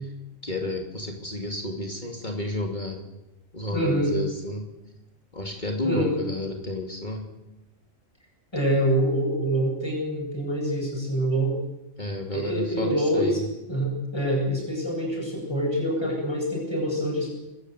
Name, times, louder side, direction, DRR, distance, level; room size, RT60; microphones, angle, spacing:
voice 1, 0.4-3.0 3.5-4.7 5.3-7.3 12.0-13.4, left 1 dB, 35° left, 2 dB, 2.8 m, -31 dB
voice 2, 3.7-4.1 5.8-6.1 8.5-11.5 12.3-13.4 13.7-17.3, equal, 20° left, -2 dB, 8.0 m, -25 dB
25.0 x 14.0 x 8.1 m, 0.92 s
omnidirectional pair, 1.4 m